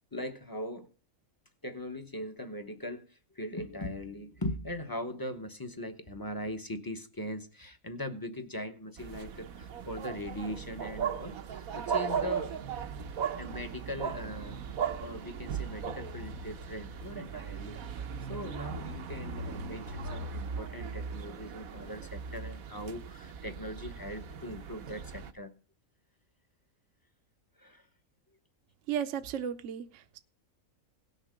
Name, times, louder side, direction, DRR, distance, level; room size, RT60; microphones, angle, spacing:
voice 1, 0.1-0.9 1.6-12.5 13.3-14.6 15.0-17.8 18.3-25.5 27.6-27.9, left 1 dB, 20° left, 0.8 m, -40 dB
sound 1, 9.0-25.3, right 6 dB, 80° right, 1.3 m, -38 dB
voice 2, 28.9-30.2, right 8 dB, 65° right, 1.0 m, -34 dB
17.5 x 6.6 x 5.0 m
omnidirectional pair, 1.4 m